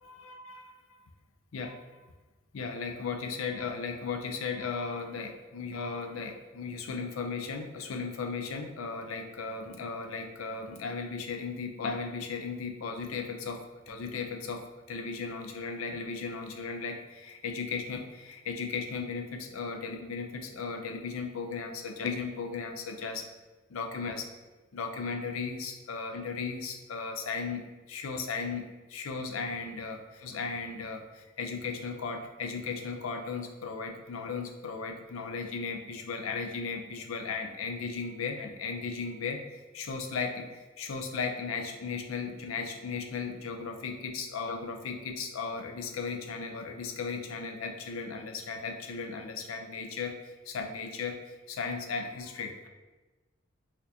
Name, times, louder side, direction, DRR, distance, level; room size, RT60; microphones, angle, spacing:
voice 1, 0.0-0.6 1.5-1.8 2.5-13.6 13.9-14.6 14.9-23.3 23.7-24.3 24.7-52.7, left 5 dB, 85° left, 4 dB, 0.5 m, -36 dB
4.2 x 2.5 x 2.7 m, 1.2 s
head